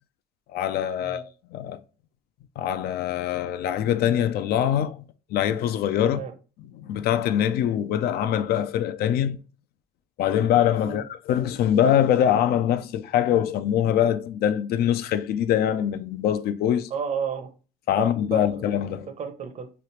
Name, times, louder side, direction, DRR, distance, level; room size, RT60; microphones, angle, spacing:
voice 1, 0.5-1.8 2.6-5.0 5.3-6.2 6.8-9.4 10.2-16.9 17.9-19.1, left 10 dB, 70° left, 0.4 m, -23 dB
voice 2, 16.9-17.5 18.0-18.6 19.1-19.7, right 7 dB, 45° right, 0.6 m, -32 dB
3.0 x 2.4 x 3.1 m
cardioid pair, 110°, 17 cm